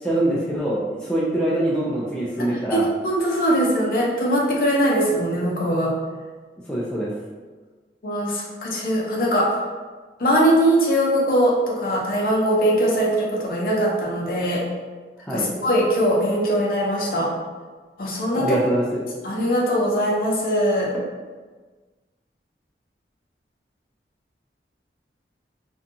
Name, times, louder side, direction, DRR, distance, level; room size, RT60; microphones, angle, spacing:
voice 1, 0.0-2.9 6.7-7.1 15.3-15.5 18.3-19.0, right 1 dB, 5° left, -7 dB, 0.3 m, -24 dB
voice 2, 2.5-5.9 8.0-9.6 10.2-14.6 15.3-17.3 18.0-18.6 19.2-20.9, equal, 50° left, -3 dB, 0.6 m, -21 dB
2.6 x 2.3 x 2.6 m, 1.4 s
head